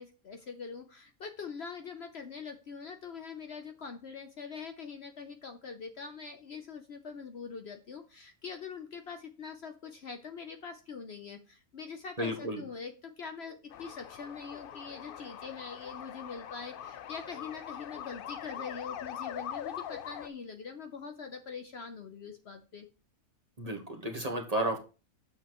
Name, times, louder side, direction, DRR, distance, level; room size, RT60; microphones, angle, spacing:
voice 1, 0.0-22.9, left 5 dB, 55° left, 6 dB, 0.9 m, -43 dB
voice 2, 12.2-12.6 23.6-24.8, right 1 dB, 30° right, 2 dB, 1.2 m, -32 dB
sound 1, 13.7-20.3, left 9 dB, 75° left, 0.5 m, -42 dB
8.5 x 7.1 x 3.0 m, 0.33 s
omnidirectional pair, 1.5 m